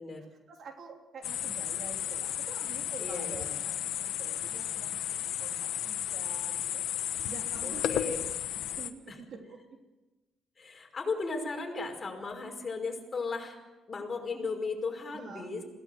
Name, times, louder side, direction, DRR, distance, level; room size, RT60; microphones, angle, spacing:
voice 1, 0.2-6.8 7.2-8.2 8.5-9.8 15.1-15.5, right 5 dB, 60° right, 3 dB, 3.2 m, -48 dB
sound 1, 1.2-8.9, left 11 dB, 80° left, 1.1 m, -34 dB
voice 2, 3.0-3.6 7.6-8.2 9.1-9.2 10.6-13.6 13.9-15.6, left 4 dB, 35° left, 2 dB, 5.4 m, -36 dB
21.5 x 17.0 x 7.9 m, 1.1 s
cardioid pair, 90°, 0 cm